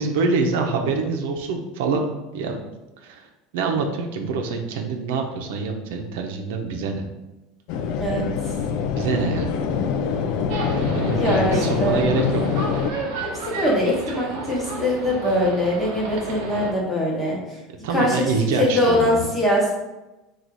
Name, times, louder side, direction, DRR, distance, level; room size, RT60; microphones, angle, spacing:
voice 1, 0.0-2.1 2.3-2.6 3.0-3.3 3.5-7.0 9.0-9.6 10.7-12.4 17.8-19.2, right 4 dB, 85° right, 3 dB, 0.6 m, -25 dB
sound 1, 7.7-12.9, left 6 dB, 55° left, 0.3 m, -24 dB
sound 2, 10.5-16.7, right 3 dB, 65° right, 0.9 m, -32 dB
voice 2, 11.1-12.0 13.5-17.6 17.9-18.2 18.6-19.7, left 1 dB, 10° left, -4 dB, 1.0 m, -22 dB
4.0 x 2.4 x 4.6 m, 1.0 s
cardioid pair, 170°, 0 cm